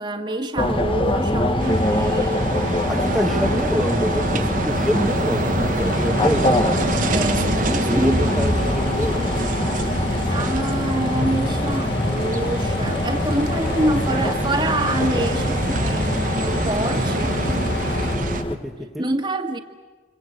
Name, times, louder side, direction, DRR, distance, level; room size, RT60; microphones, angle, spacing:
voice 1, 0.0-3.6 6.4-8.9 10.3-17.4 17.7-17.8 19.0-19.6, right 1 dB, 25° right, 5 dB, 1.8 m, -27 dB
sound 1, 0.6-18.6, left 1 dB, 30° left, 1.3 m, -24 dB
sound 2, 1.6-18.4, right 2 dB, 45° right, 1.2 m, -27 dB
voice 2, 2.9-7.0 7.6-9.4 18.5-19.1, equal, ahead, 3 dB, 1.6 m, -26 dB
sound 3, 5.8-18.2, left 3 dB, 65° left, 1.5 m, -31 dB
28.0 x 25.5 x 8.2 m, 1.3 s
head